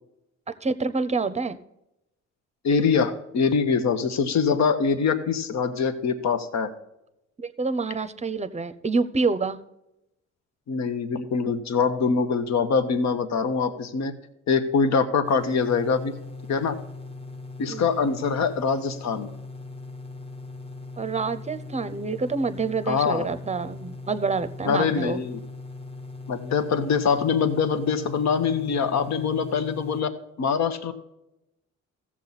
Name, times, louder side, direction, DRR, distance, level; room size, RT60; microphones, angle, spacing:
voice 1, 0.6-1.6 7.4-9.6 17.7-17.9 21.0-25.2, right 4 dB, 20° right, 12 dB, 0.7 m, -27 dB
voice 2, 2.6-6.7 10.7-14.1 14.5-16.1 16.5-16.8 17.6-19.3 22.9-23.3 24.7-25.4 26.3-30.1 30.4-30.9, left 5 dB, 65° left, 9 dB, 1.1 m, -24 dB
sound 1, 15.2-30.0, left 3 dB, 20° left, 1.0 m, -40 dB
14.5 x 7.3 x 4.1 m, 0.89 s
cardioid pair, 90°, 30 cm